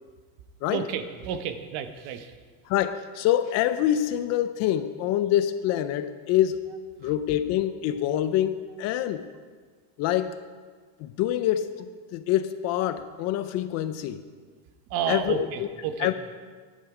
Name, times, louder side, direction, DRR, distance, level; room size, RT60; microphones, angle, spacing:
voice 1, 0.7-2.3 7.0-7.1 14.9-16.1, right 8 dB, 55° right, 9 dB, 1.0 m, -31 dB
voice 2, 2.7-6.6 7.0-9.3 10.0-10.3 11.0-14.2 15.1-15.7 16.0-16.1, left 12 dB, 40° left, 11 dB, 0.4 m, -26 dB
10.5 x 10.0 x 4.9 m, 1.5 s
cardioid pair, 165°, 42 cm